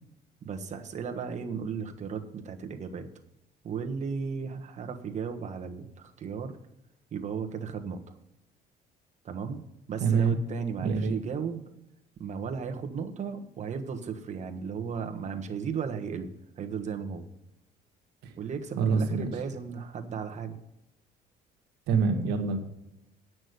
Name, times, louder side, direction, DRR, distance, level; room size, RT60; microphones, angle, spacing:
voice 1, 0.4-3.1 3.6-6.6 7.1-8.0 9.2-9.6 9.9-11.6 12.2-16.3 16.6-17.2 18.4-20.6, right 6 dB, 45° right, 5 dB, 1.4 m, -35 dB
voice 2, 10.0-10.4 10.8-11.1 18.2-18.3 18.8-19.3 21.9-22.6, right 5 dB, 85° right, 4 dB, 1.7 m, -25 dB
9.3 x 6.2 x 8.1 m, 0.87 s
cardioid pair, 110°, 17 cm